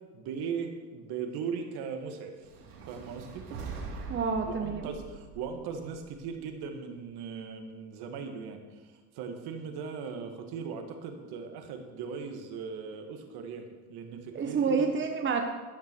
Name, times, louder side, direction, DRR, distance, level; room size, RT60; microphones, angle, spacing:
voice 1, 0.1-2.5 2.8-3.5 4.4-15.0, right 6 dB, 55° right, 5 dB, 2.1 m, -39 dB
sound 1, 2.4-6.7, right 4 dB, 85° right, 3.0 m, -43 dB
voice 2, 4.1-4.9 14.3-15.4, right 5 dB, 25° right, 3 dB, 1.4 m, -28 dB
12.0 x 11.5 x 4.7 m, 1.3 s
hypercardioid pair, 90°, 45 cm